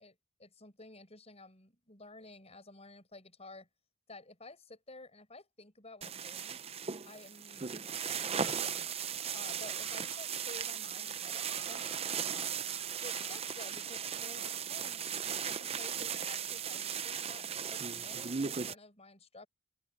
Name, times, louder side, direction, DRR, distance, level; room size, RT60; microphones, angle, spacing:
voice 1, 0.0-3.7 4.1-6.6 7.1-8.9 9.3-12.6 13.0-15.0 15.4-19.5, left 2 dB, 30° left, 7.6 m, -53 dB
sound 1, 6.0-18.7, right 7 dB, 30° right, 0.6 m, -37 dB
sound 2, 9.6-10.5 11.0-13.9 14.8-16.5, right 4 dB, 60° right, 6.8 m, -60 dB
head